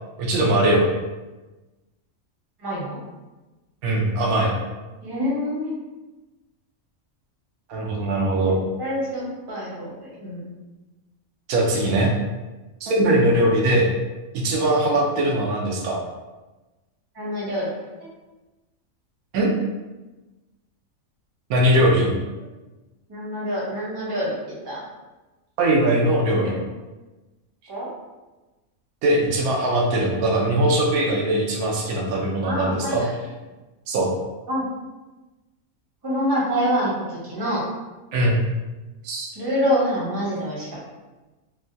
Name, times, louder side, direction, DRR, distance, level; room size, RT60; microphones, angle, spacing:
voice 1, 0.2-0.9 3.8-4.5 7.7-8.6 11.5-12.1 12.8-13.9 14.3-16.0 19.3-19.5 21.5-22.1 25.6-26.5 29.0-33.0 33.9-34.1 38.1-38.4 39.0-39.3, right 1 dB, 85° right, -1 dB, 1.1 m, -20 dB
voice 2, 2.6-3.0 5.0-5.7 8.4-8.5 8.8-10.6 17.1-17.7 23.1-24.3 24.6-24.8 26.3-26.5 27.7-27.9 32.4-33.1 34.5-34.6 36.0-37.6 39.3-40.7, equal, 25° right, -6 dB, 0.6 m, -26 dB
3.4 x 2.2 x 2.5 m, 1.1 s
omnidirectional pair, 1.5 m